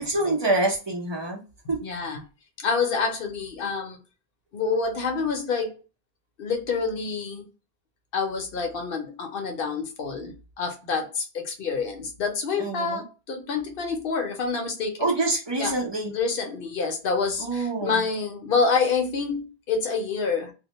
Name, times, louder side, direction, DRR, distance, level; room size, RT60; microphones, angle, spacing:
voice 1, 0.0-1.4 1.7-1.8 12.6-13.0 15.0-16.1 17.4-18.0, right 2 dB, 30° right, -1 dB, 0.6 m, -26 dB
voice 2, 1.8-2.2 2.6-4.0 4.5-5.8 6.4-7.5 8.1-15.1 15.6-15.8 16.1-20.5, left 5 dB, 65° left, 4 dB, 0.8 m, -27 dB
2.1 x 2.1 x 2.9 m, 0.31 s
omnidirectional pair, 1.1 m